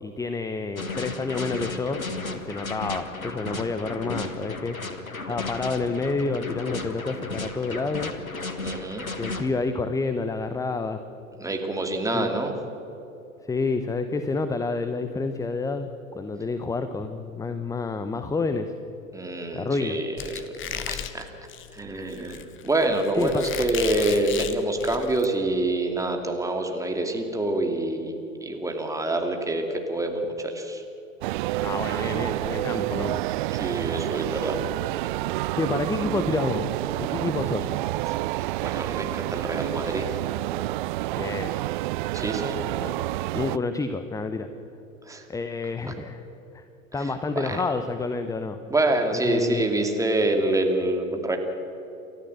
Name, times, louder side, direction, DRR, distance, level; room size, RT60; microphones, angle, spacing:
voice 1, 0.0-2.0 2.4-4.8 5.3-8.2 9.2-11.0 12.1-12.3 13.4-18.7 19.5-20.0 23.1-23.4 31.6-33.2 35.5-36.7 37.0-37.7 41.2-41.5 42.8-42.9 43.3-44.5 45.3-46.2 46.5-46.6 46.9-48.6 49.2-49.7, left 3 dB, 10° left, 9 dB, 0.8 m, -29 dB
sound 1, 0.8-9.5, left 3 dB, 85° left, 1.6 m, -34 dB
voice 2, 8.6-9.1 11.4-12.5 19.1-21.3 21.7-28.1 28.4-30.8 33.5-34.6 38.6-40.2 42.1-42.6 45.0-45.2 47.0-47.6 48.7-51.4, right 2 dB, 10° right, 3 dB, 2.6 m, -26 dB
Squeak, 20.2-25.3, left 9 dB, 30° left, 1.3 m, -35 dB
sound 2, 31.2-43.6, right 18 dB, 40° right, 0.4 m, -29 dB
29.5 x 13.5 x 7.9 m, 3.0 s
figure-of-eight pair, 85°, 40 cm